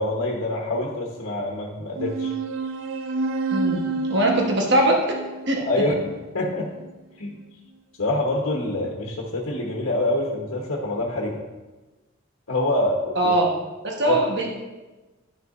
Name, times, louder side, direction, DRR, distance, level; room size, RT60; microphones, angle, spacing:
voice 1, 0.0-2.3 5.6-6.0 6.3-6.7 7.2-7.4 8.0-11.4 12.5-13.3 14.0-14.2, left 1 dB, 85° left, -1 dB, 1.1 m, -25 dB
sound 1, 2.0-6.9, right 3 dB, 75° right, 0.4 m, -29 dB
voice 2, 3.5-5.2 5.5-5.6 13.1-13.5 13.8-14.5, right 1 dB, 60° right, 0 dB, 1.0 m, -21 dB
10.5 x 6.7 x 2.5 m, 1.2 s
head